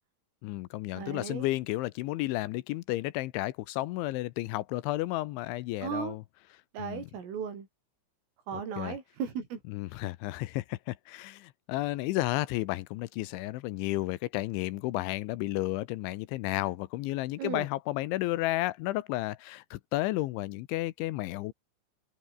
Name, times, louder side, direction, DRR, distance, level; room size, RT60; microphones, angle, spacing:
voice 1, 0.4-6.2 6.8-7.1 8.5-9.0 9.7-21.5, left 18 dB, 80° left, 3.1 m, -32 dB
voice 2, 1.0-1.5 5.8-6.2 6.7-7.7 8.5-9.6 17.4-17.7, right 7 dB, 90° right, 7.4 m, -36 dB
omnidirectional pair, 5.6 m